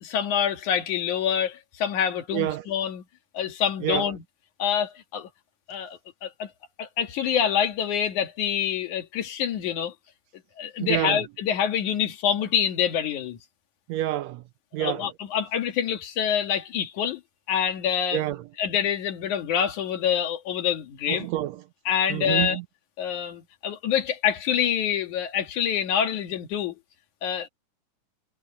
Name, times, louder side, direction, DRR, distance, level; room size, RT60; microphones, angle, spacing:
voice 1, 0.0-3.0 3.3-4.2 4.6-5.3 5.7-6.5 6.8-9.9 10.6-13.4 14.8-17.2 17.5-18.2 18.6-21.3 21.9-22.6 23.0-26.7 27.2-27.5, left 8 dB, 75° left, 3.2 m, -26 dB
voice 2, 2.3-2.6 3.8-4.1 10.8-11.2 13.9-14.4 14.7-15.1 18.1-18.5 21.1-21.6 22.1-22.6, right 14 dB, 80° right, 1.6 m, -28 dB
omnidirectional pair, 3.5 m